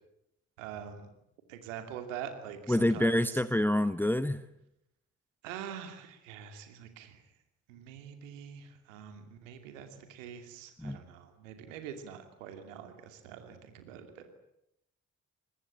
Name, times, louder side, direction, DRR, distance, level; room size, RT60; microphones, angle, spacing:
voice 1, 0.6-1.1 1.5-3.4 5.4-7.2 7.7-14.3, right 8 dB, 80° right, 7 dB, 2.7 m, -45 dB
voice 2, 2.7-4.4 10.8-11.0, left 1 dB, 5° left, 14 dB, 1.1 m, -27 dB
24.0 x 21.0 x 10.0 m, 0.80 s
figure-of-eight pair, 40°, 38 cm